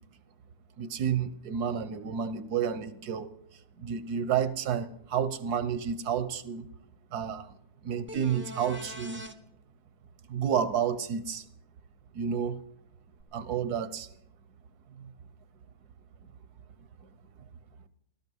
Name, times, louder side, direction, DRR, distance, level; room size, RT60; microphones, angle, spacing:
voice 1, 0.8-3.3 3.8-6.7 7.1-7.5 7.8-9.2 10.3-11.4 12.1-12.6 13.3-14.1 15.0-15.1, right 8 dB, 80° right, 1.4 m, -30 dB
sound 1, 8.1-9.3 13.2-13.3, equal, 10° right, 0.7 m, -42 dB
16.0 x 13.0 x 5.4 m
omnidirectional pair, 1.6 m